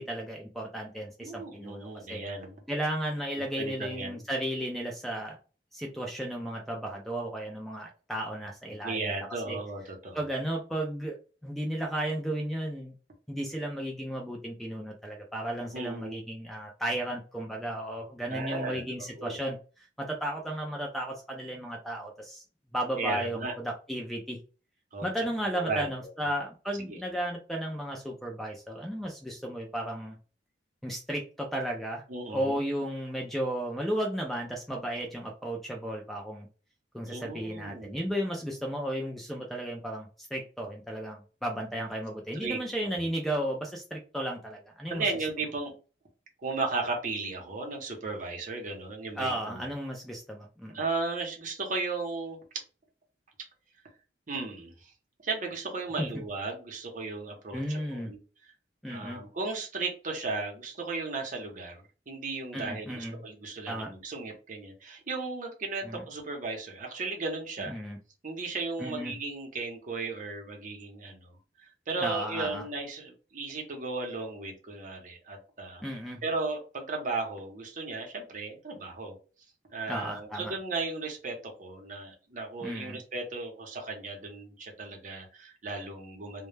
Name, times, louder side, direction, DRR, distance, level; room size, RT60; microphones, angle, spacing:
voice 1, 0.0-2.2 2.7-5.4 5.7-9.1 9.5-9.6 10.1-11.2 11.4-12.9 13.3-22.4 22.7-24.4 25.0-30.2 30.8-32.0 32.3-36.5 36.9-45.1 49.2-50.8 56.0-56.1 57.5-58.1 58.8-59.2 62.5-63.1 63.7-63.9 65.8-66.0 67.7-68.0 68.8-69.2 72.0-72.6 75.8-76.2 79.9-80.5 82.6-83.0, right 1 dB, ahead, 0 dB, 0.3 m, -34 dB
voice 2, 1.2-2.5 3.6-4.2 8.8-10.2 15.7-16.2 18.3-18.9 19.2-19.4 23.0-23.5 24.9-25.1 25.5-25.9 26.2-26.3 26.8-27.0 32.1-32.6 37.1-38.1 42.3-42.6 42.8-43.1 44.9-45.7 46.4-49.7 50.7-52.4 54.3-54.9 55.2-58.2 58.9-67.7 68.2-71.3 71.6-75.8 76.2-79.1 79.7-86.5, right 3 dB, 45° right, 1 dB, 0.7 m, -35 dB
2.1 x 2.0 x 3.1 m, 0.36 s
head